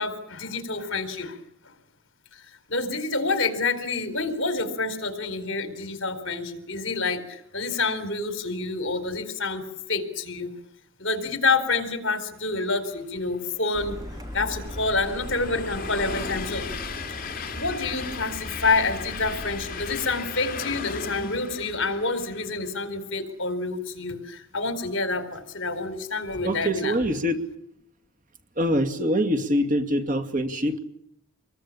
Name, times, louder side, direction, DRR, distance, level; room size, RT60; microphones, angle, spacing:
voice 1, 0.0-1.4 2.7-9.6 9.9-10.5 11.0-13.9 14.3-16.7 17.5-26.9, left 3 dB, 60° left, 10 dB, 4.4 m, -28 dB
Train, 13.4-22.8, left 4 dB, 40° left, 2.8 m, -36 dB
Car, 13.7-20.1, equal, 15° right, 3.2 m, -39 dB
voice 2, 26.4-27.4 28.6-30.8, equal, 35° right, 5 dB, 2.4 m, -24 dB
26.5 x 22.0 x 8.8 m, 0.71 s
head